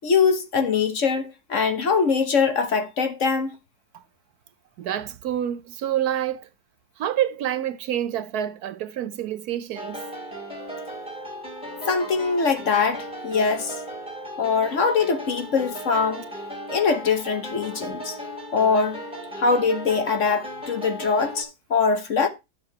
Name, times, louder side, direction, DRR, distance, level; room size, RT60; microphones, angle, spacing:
voice 1, 0.0-3.6 11.9-13.8 14.4-16.2 16.7-18.1 18.5-19.0 19.4-22.3, left 5 dB, 50° left, 1.3 m, -22 dB
voice 2, 4.8-6.5 7.0-10.0, right 11 dB, 70° right, 1.1 m, -27 dB
sound 1, 9.8-21.4, equal, 5° right, 3.6 m, -36 dB
11.5 x 7.0 x 2.8 m
omnidirectional pair, 1.8 m